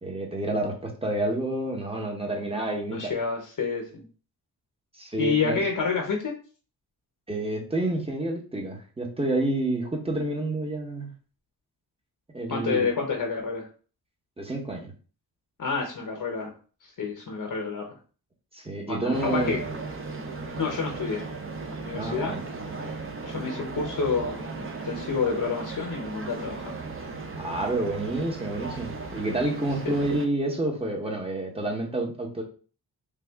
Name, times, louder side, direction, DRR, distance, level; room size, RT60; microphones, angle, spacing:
voice 1, 0.0-3.1 4.9-5.6 7.3-11.1 12.3-12.9 14.4-14.9 18.5-19.6 21.9-22.5 27.4-32.4, right 2 dB, 15° right, 0 dB, 0.9 m, -29 dB
voice 2, 2.9-4.1 5.2-6.4 12.5-13.7 15.6-16.5 16.8-18.0 18.9-19.6 20.6-21.3 21.8-22.4 23.2-26.7 29.8-29.9, left 5 dB, 50° left, 2 dB, 0.8 m, -29 dB
sound 1, 19.1-30.3, right 4 dB, 30° right, 0.6 m, -36 dB
3.3 x 2.4 x 3.4 m, 0.39 s
cardioid pair, 85°, 41 cm